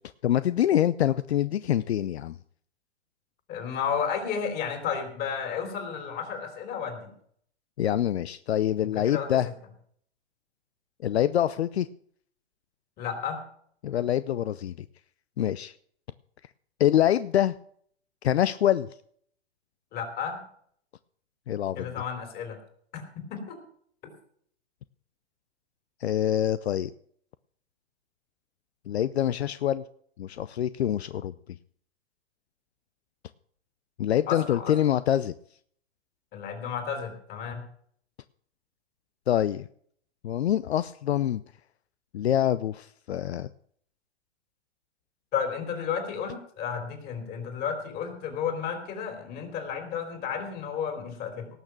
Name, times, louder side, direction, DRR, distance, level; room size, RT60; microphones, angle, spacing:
voice 1, 0.2-2.4 7.8-9.5 11.0-11.9 13.8-14.9 15.4-15.7 16.8-17.5 18.2-18.9 21.5-21.9 26.0-26.9 28.9-29.8 30.2-31.3 34.0-35.3 39.3-39.7 40.2-41.4 42.1-43.5, left 11 dB, 70° left, 16 dB, 0.6 m, -25 dB
voice 2, 3.5-7.1 8.8-9.3 13.0-13.4 19.9-20.4 21.8-22.6 22.9-23.6 34.3-34.7 36.3-37.6 45.3-51.5, left 7 dB, 30° left, 6 dB, 3.6 m, -32 dB
18.5 x 6.7 x 7.2 m, 0.62 s
hypercardioid pair, 125°, 33 cm